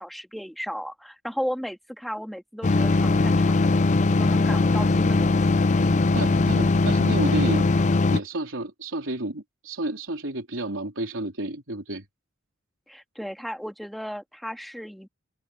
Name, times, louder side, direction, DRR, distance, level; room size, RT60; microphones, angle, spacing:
voice 1, 0.0-3.8 4.1-5.4 12.9-15.1, equal, ahead, 2.1 m, -35 dB
sound 1, 2.6-8.2, left 3 dB, 35° left, 0.5 m, -20 dB
voice 2, 6.1-7.7 8.1-12.1, right 1 dB, 70° right, 4.0 m, -30 dB
open air
head